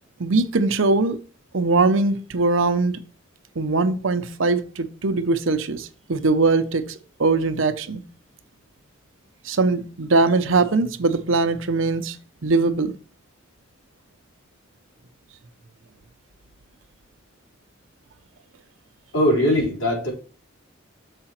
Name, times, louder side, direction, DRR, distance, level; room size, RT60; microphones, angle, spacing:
voice 1, 0.2-1.2 1.5-3.0 3.6-6.9 7.2-8.0 9.4-12.2 12.4-12.9, right 3 dB, 70° right, 0.7 m, -21 dB
voice 2, 19.1-20.1, left 1 dB, 90° left, 3.7 m, -20 dB
6.7 x 4.9 x 4.4 m
head